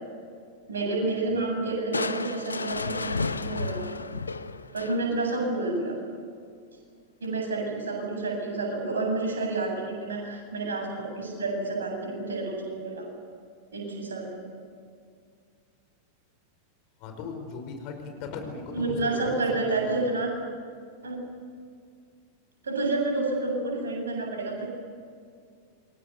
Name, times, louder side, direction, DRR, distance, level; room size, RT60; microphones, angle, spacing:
voice 1, 0.7-3.8 4.7-6.0 7.2-13.1 13.7-14.5 18.7-20.3 21.0-21.2 22.6-24.7, right 2 dB, 70° right, 1 dB, 7.8 m, -29 dB
Crushing, 1.9-5.3, left 4 dB, 75° left, 0.9 m, -32 dB
voice 2, 17.0-20.1, left 4 dB, 45° left, 5 dB, 5.1 m, -38 dB
28.0 x 23.5 x 6.8 m, 2.2 s
figure-of-eight pair, 90°, 0 cm